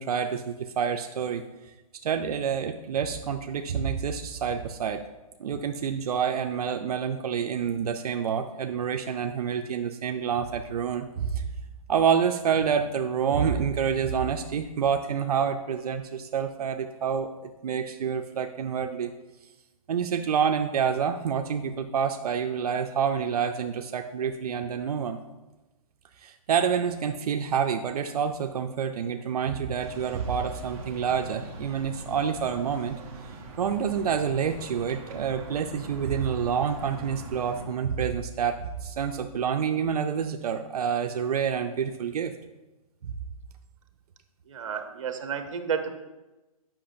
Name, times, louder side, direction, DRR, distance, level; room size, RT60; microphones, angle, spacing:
voice 1, 0.0-1.4 2.0-5.0 5.4-11.5 11.9-19.1 19.9-25.2 26.2-33.0 33.6-42.4 43.0-43.1, right 7 dB, 90° right, 5 dB, 0.5 m, -28 dB
sound 1, 29.8-37.6, right 2 dB, 15° right, 0.7 m, -42 dB
voice 2, 44.5-46.0, right 7 dB, 55° right, 7 dB, 0.8 m, -31 dB
8.5 x 5.7 x 2.6 m, 1.1 s
hypercardioid pair, 165°, 19 cm